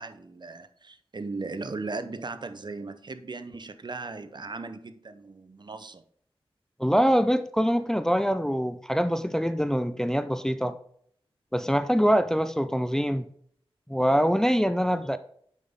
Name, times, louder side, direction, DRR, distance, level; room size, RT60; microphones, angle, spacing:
voice 1, 0.0-6.0, right 3 dB, 50° right, 0.6 m, -37 dB
voice 2, 6.8-10.8 11.5-13.3 13.9-15.2, equal, 5° left, 0.4 m, -24 dB
7.2 x 5.5 x 3.5 m
cardioid pair, 50°, 10 cm